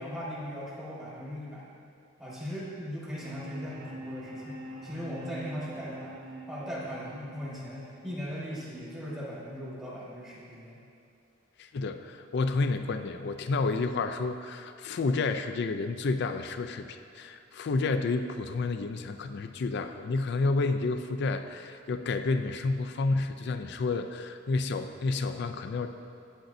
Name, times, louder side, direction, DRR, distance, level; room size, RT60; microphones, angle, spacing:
voice 1, 0.0-1.6 2.2-6.1 6.5-10.8, equal, 15° right, -8 dB, 1.4 m, -38 dB
sound 1, 3.1-9.1, equal, 70° right, 1.1 m, -45 dB
voice 2, 11.6-25.9, left 3 dB, 60° left, 7 dB, 0.4 m, -30 dB
10.0 x 8.1 x 2.6 m, 2.5 s
head